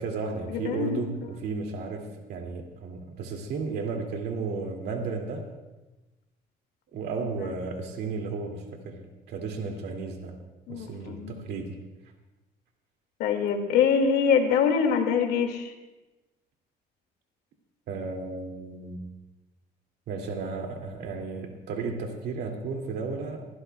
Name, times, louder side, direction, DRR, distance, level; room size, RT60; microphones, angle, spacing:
voice 1, 0.0-5.5 6.9-10.4 10.7-11.8 17.9-19.0 20.1-23.5, right 4 dB, 75° right, 3 dB, 2.3 m, -34 dB
voice 2, 0.6-1.1 10.7-11.4 13.2-15.7, left 6 dB, 85° left, 4 dB, 2.1 m, -24 dB
25.0 x 15.5 x 2.3 m, 1.1 s
cardioid pair, 110°, 17 cm